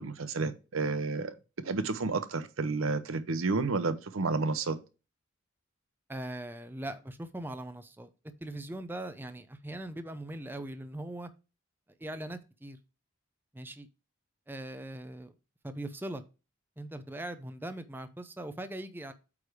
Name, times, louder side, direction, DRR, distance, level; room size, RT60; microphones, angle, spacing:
voice 1, 0.0-1.3 1.6-4.8, right 3 dB, 90° right, 0.8 m, -31 dB
voice 2, 6.1-8.1 8.4-11.3 12.0-12.8 13.5-13.9 14.5-15.3 15.6-16.2 16.8-19.1, right 1 dB, 10° right, 0.5 m, -40 dB
8.5 x 3.3 x 4.8 m
head